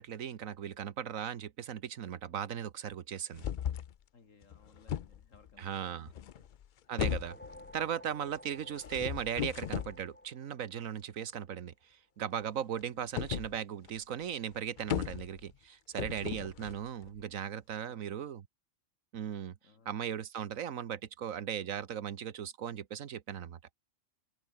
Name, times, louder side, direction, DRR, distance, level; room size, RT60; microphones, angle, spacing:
voice 1, 0.0-3.5 5.6-6.1 6.9-7.4 7.7-18.4 19.1-19.5 19.8-23.6, right 9 dB, 90° right, 1.5 m, -38 dB
sound 1, 3.3-3.9 4.4-5.5 6.1-6.7 7.0-7.7 8.8-10.0 13.2-13.5 13.8-13.9 14.2-14.3 14.5-15.5 16.0-17.2, left 10 dB, 55° left, 0.5 m, -37 dB
voice 2, 4.1-6.5 12.6-13.1 16.3-16.7 17.8-18.3 19.6-20.0, left 4 dB, 75° left, 2.7 m, -61 dB
sound 2, 6.9-11.5, left 1 dB, 10° left, 1.7 m, -54 dB
omnidirectional pair, 1.4 m